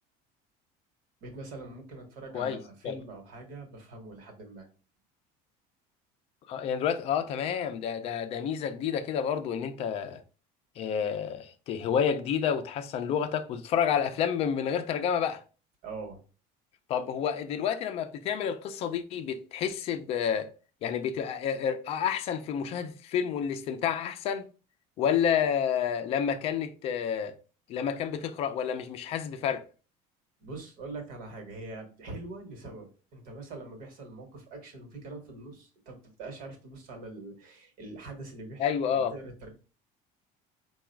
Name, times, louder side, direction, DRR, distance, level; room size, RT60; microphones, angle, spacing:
voice 1, 1.2-4.7 15.8-16.2 30.4-39.5, right 2 dB, 55° right, 1.3 m, -43 dB
voice 2, 6.5-10.2 10.8-15.4 16.9-20.5 20.8-24.5 25.0-27.3 27.7-29.7 38.6-39.1, left 8 dB, 35° left, 0.5 m, -29 dB
4.8 x 2.3 x 4.4 m
cardioid pair, 180°, 17 cm